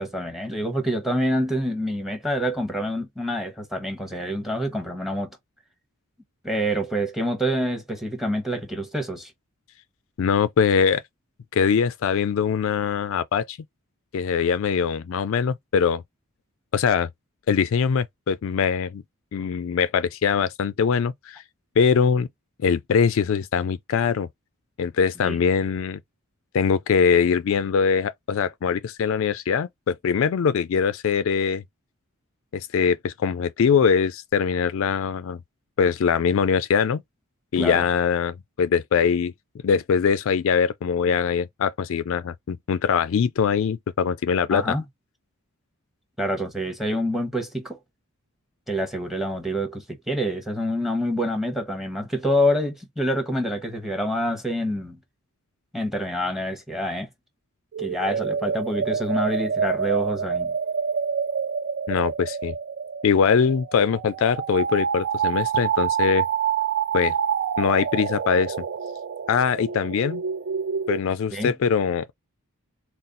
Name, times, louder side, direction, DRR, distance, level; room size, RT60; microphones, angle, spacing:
voice 1, 0.0-5.3 6.4-9.3 25.2-25.4 37.6-37.8 44.5-44.8 46.2-47.8 48.7-55.0 55.7-57.1 57.8-60.6 71.3-71.5, equal, ahead, 0.9 m, -27 dB
voice 2, 10.2-11.0 11.5-13.6 14.1-16.0 16.7-17.1 17.5-19.0 19.3-21.4 21.8-22.3 22.6-24.3 24.8-26.0 26.5-31.6 32.5-35.4 35.8-37.0 37.5-39.3 39.6-44.8 61.9-62.5 63.0-66.3 66.9-67.1 67.6-68.6 69.3-70.2 70.9-72.1, left 6 dB, 60° left, 0.3 m, -22 dB
sound 1, 57.7-71.0, right 7 dB, 50° right, 0.3 m, -27 dB
4.1 x 2.0 x 3.8 m
head